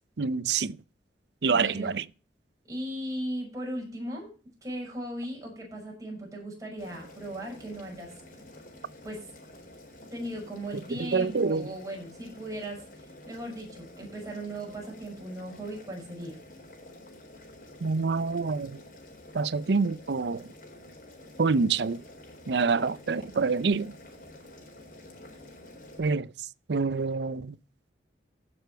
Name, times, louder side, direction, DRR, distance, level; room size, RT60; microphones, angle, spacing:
voice 1, 0.2-0.8 1.4-2.0 11.1-11.7 17.8-18.8 19.3-20.4 21.4-22.0 22.5-23.9 26.0-26.3 26.7-27.5, right 4 dB, 70° right, 0.6 m, -26 dB
voice 2, 1.5-1.9 2.7-4.3 4.6-8.1 9.0-9.3 10.1-16.4, right 1 dB, 20° right, 6.3 m, -37 dB
Boiling, 6.8-26.0, left 1 dB, 50° left, 4.2 m, -49 dB
15.5 x 7.0 x 4.6 m
head